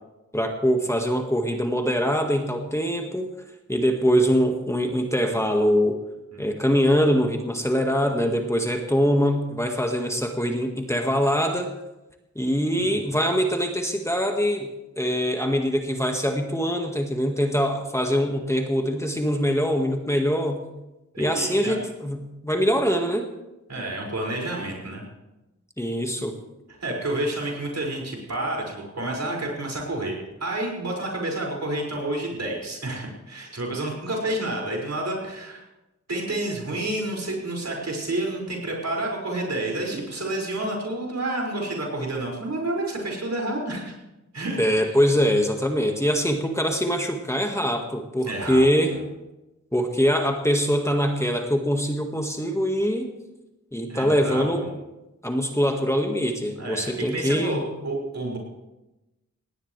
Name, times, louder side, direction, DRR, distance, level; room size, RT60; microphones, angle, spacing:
voice 1, 0.3-3.3 3.7-6.0 6.4-11.7 12.4-14.7 15.0-20.6 21.2-22.2 22.4-23.3 25.8-26.3 44.6-49.0 49.7-53.1 53.7-54.7 55.2-57.6, equal, 10° left, 3 dB, 1.7 m, -23 dB
voice 2, 21.1-21.8 23.7-25.0 26.8-35.6 36.1-43.9 44.3-44.6 48.2-49.0 53.9-54.7 56.5-58.4, right 1 dB, 65° right, -1 dB, 6.0 m, -29 dB
19.0 x 17.5 x 3.4 m, 0.98 s
wide cardioid pair, 85°, 29 cm